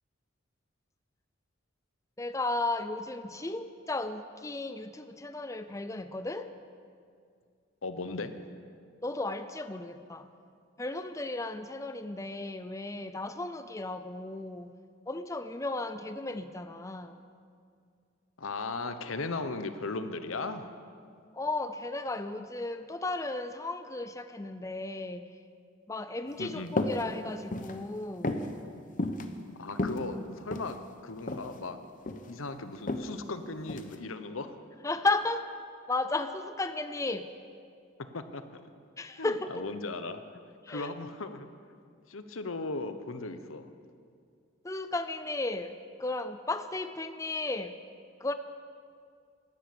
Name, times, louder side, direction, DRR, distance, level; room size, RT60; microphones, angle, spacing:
voice 1, 2.2-6.5 9.0-10.3 10.8-14.7 15.1-17.2 21.3-25.3 25.9-28.5 34.8-35.5 35.9-37.3 39.0-39.7 40.6-40.9 44.6-47.8 48.2-48.3, left 2 dB, 15° left, 10 dB, 0.5 m, -34 dB
voice 2, 7.8-8.3 18.4-20.7 26.4-26.8 29.6-30.8 31.0-31.8 32.3-34.5 38.1-38.6 39.2-40.2 40.7-41.5 42.1-43.7, left 3 dB, 90° left, 10 dB, 1.0 m, -37 dB
sound 1, 26.7-27.0 27.4-27.8 28.2-28.5 29.0-29.3 29.7-30.7 31.3-31.5 31.8-32.3 32.9-33.1 33.7-34.0, left 2 dB, 40° left, 0.9 m, -31 dB
13.0 x 12.5 x 8.7 m, 2.3 s
head